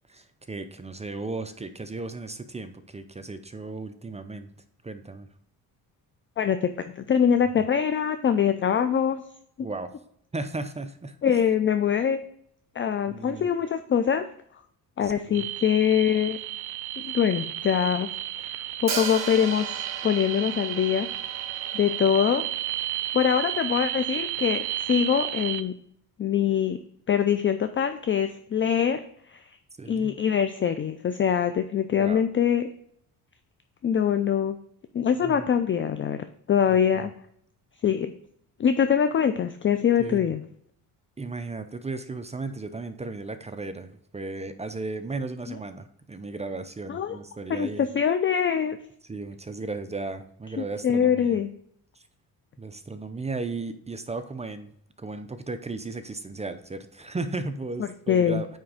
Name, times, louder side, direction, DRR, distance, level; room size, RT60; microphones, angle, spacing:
voice 1, 0.1-4.5 4.8-5.3 9.6-9.9 10.3-11.2 13.1-13.5 15.3-15.4 29.8-30.1 32.0-32.2 35.2-35.3 40.0-40.3 41.2-47.9 49.1-51.4 52.6-54.7 55.0-58.5, right 3 dB, 20° right, 9 dB, 0.5 m, -35 dB
voice 2, 6.4-9.2 11.2-12.2 12.7-14.3 14.5-14.6 15.0-16.4 17.0-18.1 18.4-19.7 20.0-21.1 21.7-22.4 23.1-25.7 26.2-26.8 27.1-29.6 29.9-32.7 33.8-34.6 34.9-36.2 36.5-37.1 37.8-38.1 38.6-40.4 45.5-45.6 46.9-47.2 47.5-48.8 50.6-51.5 57.8-58.4, left 8 dB, 35° left, 9 dB, 0.4 m, -24 dB
sound 1, 15.3-25.6, right 13 dB, 85° right, 0.6 m, -33 dB
Hi-hat, 18.9-22.8, right 6 dB, 45° right, 1.5 m, -36 dB
8.9 x 3.5 x 4.9 m, 0.68 s
cardioid pair, 95°, 37 cm